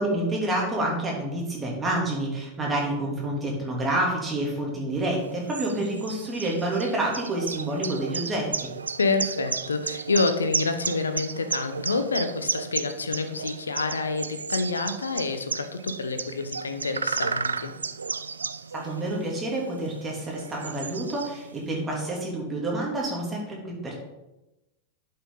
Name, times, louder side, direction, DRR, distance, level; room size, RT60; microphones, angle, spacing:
voice 1, 0.0-8.7 18.7-24.0, right 1 dB, 15° right, -2 dB, 2.9 m, -28 dB
sound 1, 5.1-21.7, right 5 dB, 75° right, 0.3 m, -34 dB
voice 2, 9.0-17.7, left 3 dB, 75° left, 8 dB, 0.9 m, -28 dB
11.0 x 5.8 x 4.0 m, 0.98 s
figure-of-eight pair, 90°, 0 cm